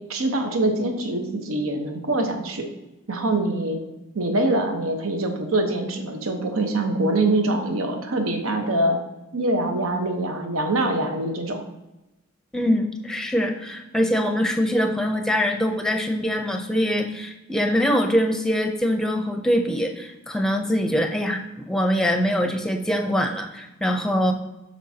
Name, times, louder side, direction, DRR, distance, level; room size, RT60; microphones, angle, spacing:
voice 1, 0.1-2.6 3.1-3.8 4.1-9.0 9.3-11.6, right 2 dB, 80° right, 4 dB, 1.1 m, -24 dB
voice 2, 12.5-24.3, equal, 5° left, 4 dB, 0.6 m, -23 dB
12.0 x 4.5 x 2.8 m, 0.97 s
head